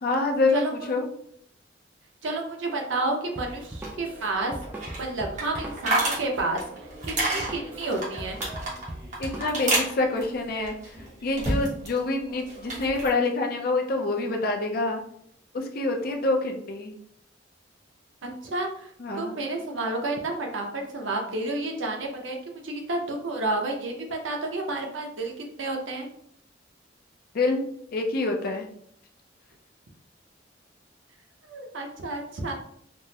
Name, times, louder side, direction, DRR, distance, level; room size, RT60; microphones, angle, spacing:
voice 1, 0.0-1.1 9.2-10.8 11.2-15.0 15.5-16.9 19.0-19.4 27.3-27.6 27.9-28.7, left 2 dB, 50° left, 3 dB, 0.5 m, -26 dB
voice 2, 0.5-0.9 2.2-4.5 5.0-6.6 7.0-8.4 18.2-18.9 19.2-26.1 31.4-32.5, right 2 dB, 85° right, 2 dB, 0.7 m, -30 dB
Drum kit, 3.4-9.8, right 1 dB, 10° right, 0.4 m, -40 dB
sound 1, 3.5-12.0 12.3-13.1, right 1 dB, 40° right, 1.0 m, -31 dB
3.5 x 2.0 x 2.8 m, 0.68 s
head